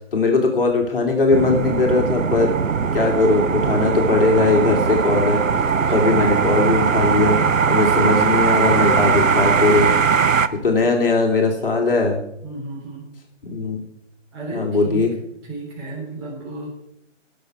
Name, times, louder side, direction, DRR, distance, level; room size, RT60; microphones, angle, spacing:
voice 1, 0.1-2.6 2.9-5.4 5.9-7.4 7.7-9.9 10.6-12.2 13.4-13.8 14.5-15.1, left 3 dB, 45° left, 2 dB, 2.4 m, -19 dB
sound 1, 1.3-10.5, right 6 dB, 90° right, 0.9 m, -20 dB
voice 2, 3.1-3.5 5.8-5.9 10.5-10.7 12.4-13.1 14.3-15.1 15.5-16.7, right 2 dB, 20° right, -5 dB, 3.7 m, -34 dB
19.0 x 6.7 x 4.7 m, 0.80 s
figure-of-eight pair, 160°, 38 cm